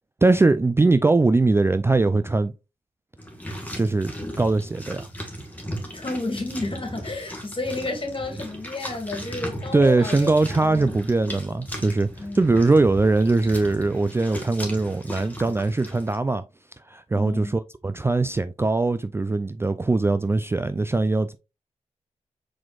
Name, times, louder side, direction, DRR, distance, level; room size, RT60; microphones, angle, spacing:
voice 1, 0.2-2.5 3.8-5.1 9.7-16.4 16.9-21.4, right 3 dB, 20° right, 0.3 m, -21 dB
sound 1, 3.2-16.2, equal, 10° left, 1.6 m, -37 dB
voice 2, 5.9-10.3 10.6-10.9 12.2-12.5 17.1-17.6, left 2 dB, 40° left, 2.0 m, -31 dB
4.5 x 4.2 x 2.3 m
supercardioid pair, 45°, 13 cm